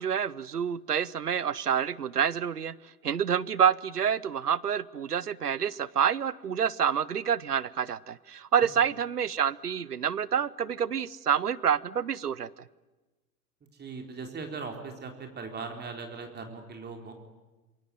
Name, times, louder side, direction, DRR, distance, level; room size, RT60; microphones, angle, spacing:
voice 1, 0.0-2.7 3.0-12.5, right 8 dB, 85° right, 21 dB, 0.9 m, -28 dB
voice 2, 13.8-17.1, right 4 dB, 20° right, 4 dB, 4.0 m, -39 dB
27.0 x 23.0 x 9.4 m, 1.2 s
figure-of-eight pair, 90°, 45 cm